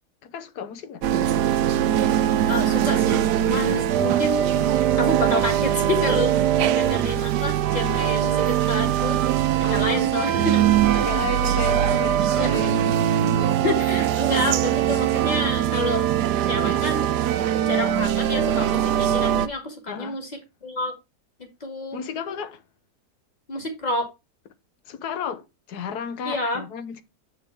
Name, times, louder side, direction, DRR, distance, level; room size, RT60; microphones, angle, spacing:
voice 1, 0.2-1.1 6.6-6.7 9.6-10.1 10.9-12.9 13.4-13.5 14.1-14.2 16.3-16.4 19.9-20.2 21.9-22.6 24.8-27.0, left 6 dB, 75° left, 1.4 m, -33 dB
sound 1, 1.0-19.5, right 11 dB, 85° right, 1.3 m, -21 dB
voice 2, 2.5-4.6 5.0-6.3 6.7-9.2 9.6-10.7 12.3-12.6 13.6-16.1 16.5-17.1 17.7-20.3 20.6-20.9 21.6-22.0 23.5-24.1 26.2-26.6, left 2 dB, 25° left, 2.4 m, -28 dB
8.0 x 6.3 x 3.4 m
omnidirectional pair, 1.7 m